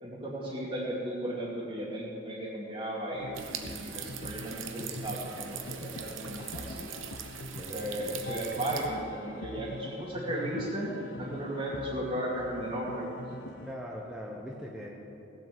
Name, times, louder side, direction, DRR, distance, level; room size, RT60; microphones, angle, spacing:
voice 1, 0.0-6.9 7.7-10.9 11.2-13.0, right 1 dB, 25° right, -8 dB, 2.2 m, -35 dB
sound 1, 3.1-13.8, left 2 dB, 60° left, 0.7 m, -43 dB
sound 2, 3.3-8.9, right 8 dB, 80° right, 1.1 m, -41 dB
voice 2, 3.6-4.0 7.5-8.2 13.6-14.9, equal, 5° right, -3 dB, 1.0 m, -42 dB
17.5 x 7.9 x 7.7 m, 2.7 s
head